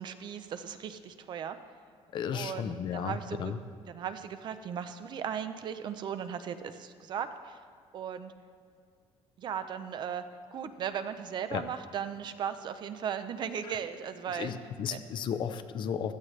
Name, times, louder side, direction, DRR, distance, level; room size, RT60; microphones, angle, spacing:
voice 1, 0.0-1.6 2.3-3.5 3.9-7.6 7.9-8.3 9.4-10.2 10.5-14.5 14.9-15.0, right 8 dB, 40° right, 10 dB, 0.6 m, -37 dB
voice 2, 2.1-3.6 11.5-11.6 13.7-13.8 14.3-16.1, left 7 dB, 45° left, 10 dB, 0.6 m, -34 dB
16.5 x 12.5 x 3.2 m, 2.1 s
cardioid pair, 175°, 11 cm